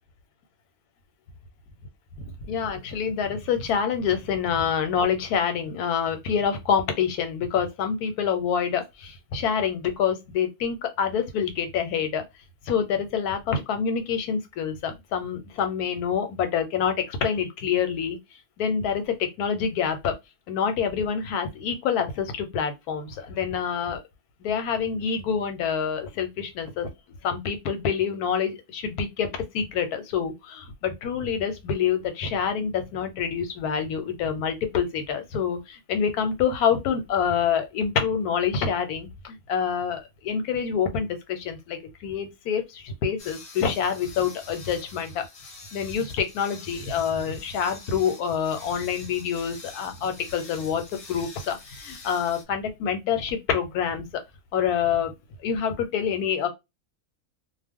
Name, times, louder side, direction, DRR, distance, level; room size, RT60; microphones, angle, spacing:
voice 1, 2.2-12.2 12.7-18.2 18.6-20.2 20.5-24.0 24.4-26.9 27.2-29.3 29.5-45.2 45.7-54.0 54.5-55.1 55.4-56.5, left 7 dB, 85° left, 1.2 m, -27 dB
sound 1, 43.2-52.4, left 3 dB, 50° left, 0.8 m, -45 dB
2.4 x 2.2 x 3.5 m
omnidirectional pair, 1.6 m